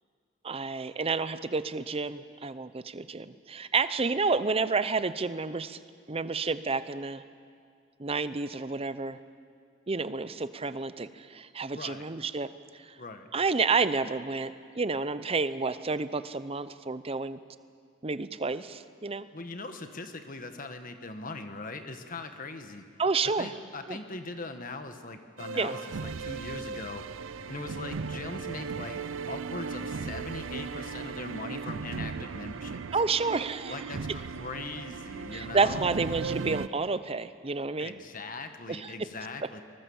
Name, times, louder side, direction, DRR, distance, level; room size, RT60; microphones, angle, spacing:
voice 1, 0.4-5.8 6.1-7.2 8.0-9.2 9.9-12.9 13.3-17.4 18.0-19.3 23.0-23.5 23.9-24.0 25.5-25.7 32.9-33.7 35.3-37.9 38.7-38.9, right 4 dB, 30° right, 13 dB, 0.7 m, -30 dB
voice 2, 11.7-12.0 13.0-13.3 19.3-22.9 23.4-27.0 27.5-32.8 33.7-36.0 37.8-39.6, left 3 dB, 45° left, 7 dB, 1.4 m, -40 dB
sound 1, 25.4-36.7, right 5 dB, 75° right, 0.5 m, -37 dB
23.5 x 20.5 x 7.2 m, 2.2 s
head